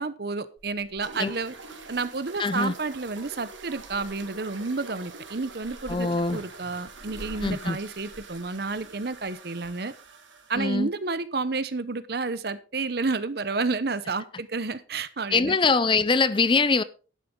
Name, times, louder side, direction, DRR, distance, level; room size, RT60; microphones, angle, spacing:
voice 1, 0.0-1.5 1.9-9.9 10.5-15.5, right 3 dB, 55° right, 0.8 m, -30 dB
Purr / Meow, 0.6-9.4, equal, 20° right, 6.9 m, -50 dB
sound 1, 1.0-10.6, right 4 dB, 85° right, 2.1 m, -45 dB
voice 2, 2.4-2.7 5.9-6.4 7.4-7.8 10.5-10.9 15.3-16.8, left 4 dB, 25° left, 0.5 m, -23 dB
11.0 x 11.0 x 3.7 m
head